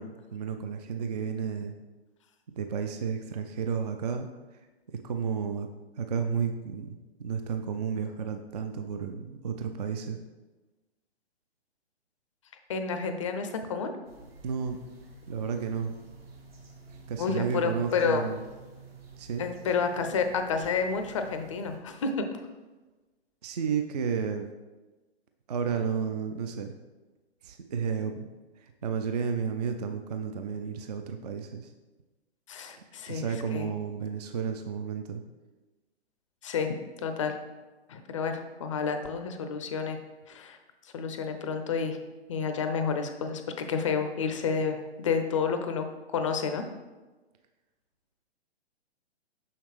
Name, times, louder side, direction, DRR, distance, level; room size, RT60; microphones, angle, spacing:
voice 1, 0.0-1.7 2.6-4.3 5.0-5.7 6.0-10.2 14.4-14.8 15.3-15.9 16.9-18.4 19.2-19.4 23.4-24.5 25.5-26.7 27.4-28.3 28.6-31.7 33.1-35.2, right 6 dB, 40° right, 6 dB, 0.4 m, -32 dB
voice 2, 12.7-13.9 17.2-18.3 19.4-22.3 32.5-33.7 36.4-37.4 37.9-40.0 40.3-40.6 40.9-42.0 42.3-45.9 46.1-46.6, left 5 dB, 30° left, 7 dB, 0.5 m, -30 dB
sound 1, 14.0-21.8, right 3 dB, 65° right, 1.3 m, -50 dB
6.4 x 5.7 x 3.2 m, 1.2 s
figure-of-eight pair, 120°, 32 cm